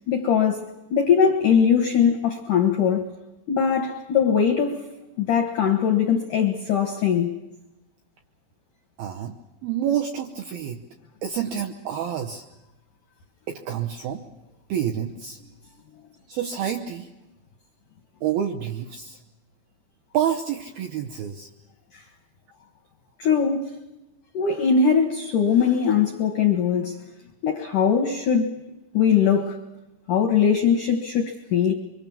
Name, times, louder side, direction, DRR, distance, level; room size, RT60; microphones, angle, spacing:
voice 1, 0.1-3.1 3.5-4.8 5.2-7.3 23.2-23.7 24.3-27.0 27.4-28.5 28.9-29.6 30.1-31.7, left 7 dB, 75° left, 1.9 m, -21 dB
voice 2, 9.0-9.4 9.6-10.8 11.2-12.5 13.5-14.2 14.7-15.4 16.3-17.1 18.2-19.2 20.1-21.5, right 9 dB, 75° right, 2.2 m, -28 dB
25.0 x 23.5 x 7.0 m
omnidirectional pair, 5.5 m